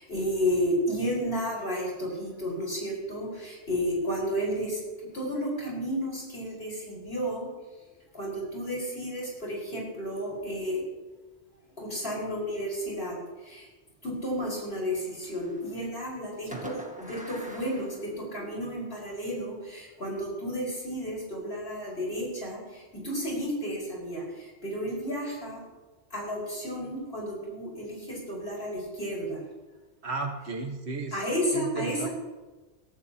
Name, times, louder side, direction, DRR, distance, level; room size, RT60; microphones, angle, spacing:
voice 1, 0.0-4.8 5.1-7.5 8.1-10.8 11.8-13.2 13.5-13.6 14.0-16.7 17.0-24.2 24.6-25.6 26.1-29.4 31.1-32.1, equal, 55° left, -3 dB, 5.3 m, -32 dB
Fireworks, 14.9-15.9 16.5-18.7, equal, 5° right, 1.5 m, -45 dB
voice 2, 30.0-31.2 31.5-32.1, right 3 dB, 65° right, 2 dB, 1.7 m, -34 dB
22.0 x 14.0 x 2.9 m, 1.3 s
omnidirectional pair, 1.2 m